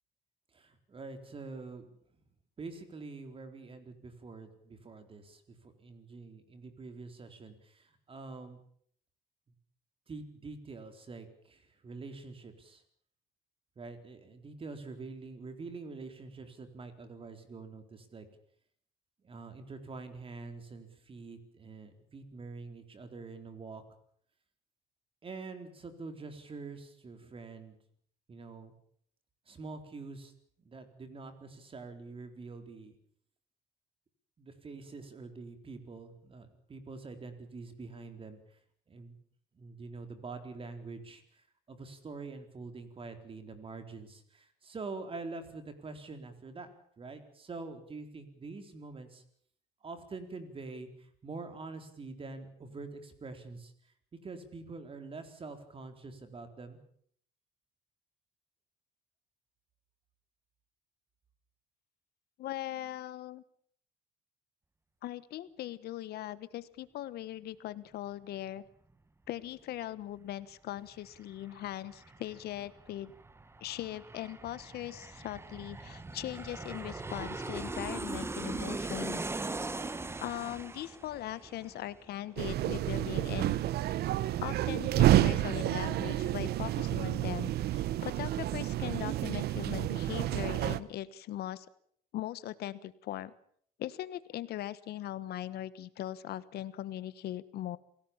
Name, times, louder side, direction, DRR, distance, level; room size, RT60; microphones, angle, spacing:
voice 1, 0.5-1.9 2.6-8.6 10.1-12.8 13.8-18.3 19.2-23.8 25.2-27.8 28.3-28.7 29.5-30.3 30.6-32.9 34.4-38.4 38.9-39.1 39.5-41.4 41.7-46.7 47.0-49.2 49.8-53.7 54.2-56.8, right 3 dB, 30° right, 8 dB, 4.2 m, -45 dB
voice 2, 62.4-63.4 65.0-68.6 69.3-73.1 73.6-79.2 80.2-83.6 84.4-91.7 92.1-93.3 93.8-97.8, left 13 dB, 70° left, 16 dB, 1.3 m, -40 dB
Aircraft, 70.8-70.9 71.1-82.5 82.8-82.9, right 3 dB, 15° right, 1.3 m, -40 dB
sound 1, 82.4-90.8, right 13 dB, 70° right, 1.1 m, -29 dB
28.0 x 17.5 x 7.3 m, 0.63 s
cardioid pair, 110°, 17 cm